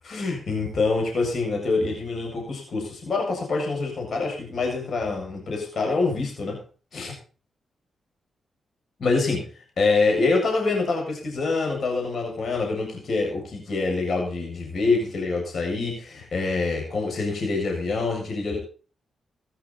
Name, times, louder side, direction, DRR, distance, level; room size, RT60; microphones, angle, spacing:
voice 1, 0.0-6.6 6.9-7.1 9.0-9.5 9.8-18.6, left 3 dB, 60° left, 1 dB, 7.1 m, -25 dB
16.5 x 12.5 x 4.2 m, 0.38 s
supercardioid pair, 45°, 0 cm